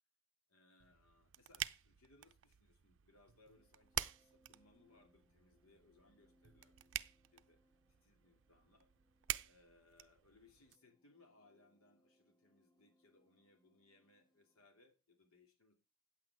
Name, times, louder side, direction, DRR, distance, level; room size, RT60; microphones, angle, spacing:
voice 1, 0.5-6.9 7.3-7.6 8.0-8.9 9.4-15.7, left 2 dB, 85° left, 5 dB, 2.6 m, -69 dB
sound 1, 0.8-10.8, right 13 dB, 60° right, 0.5 m, -48 dB
sound 2, 3.6-14.7, equal, 20° left, 0.9 m, -77 dB
9.0 x 8.3 x 4.7 m, 0.33 s
head